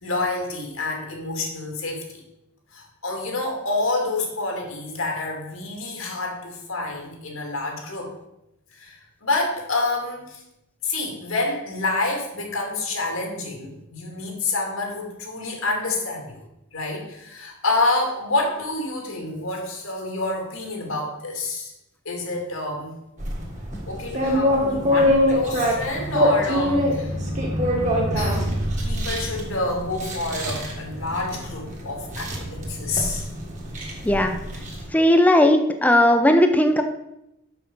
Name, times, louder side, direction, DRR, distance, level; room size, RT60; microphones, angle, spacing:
voice 1, 0.0-2.2 2.7-8.1 8.8-10.4 10.8-16.4 16.7-21.7 22.1-23.0 23.9-27.1 28.1-28.6 28.9-33.2, left 2 dB, 85° left, 0 dB, 2.2 m, -28 dB
sound 1, 23.2-34.9, equal, 35° right, 1.6 m, -25 dB
voice 2, 34.0-34.4 34.9-36.8, left 1 dB, 5° left, 7 dB, 0.5 m, -17 dB
6.2 x 5.9 x 5.3 m, 0.87 s
head